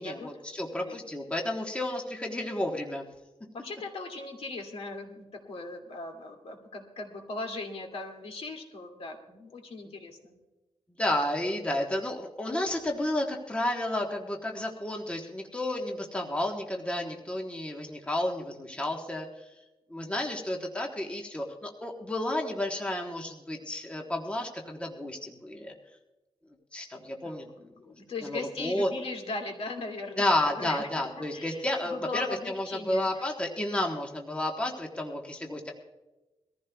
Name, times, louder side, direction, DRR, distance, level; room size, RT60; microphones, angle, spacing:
voice 1, 0.0-3.0 11.0-19.3 19.9-25.7 26.7-27.5 28.2-28.9 30.2-32.3 32.5-35.7, left 1 dB, 10° left, 0 dB, 1.2 m, -31 dB
voice 2, 3.6-10.3 27.2-33.2, left 3 dB, 60° left, 2 dB, 2.4 m, -39 dB
23.5 x 15.0 x 2.3 m, 1.1 s
wide cardioid pair, 165°, 11 cm